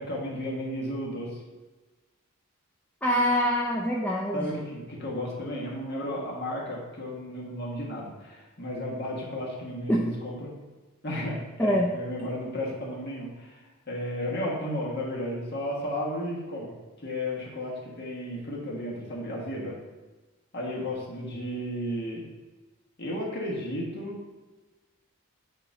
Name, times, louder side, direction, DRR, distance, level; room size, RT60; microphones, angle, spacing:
voice 1, 0.0-1.4 4.3-10.5 11.0-19.8 20.5-22.2 23.0-24.2, left 1 dB, 50° left, -3 dB, 1.5 m, -33 dB
voice 2, 3.0-4.6 9.9-10.0 11.6-11.9, equal, 5° left, -3 dB, 0.5 m, -25 dB
7.7 x 3.0 x 4.8 m, 1.3 s
head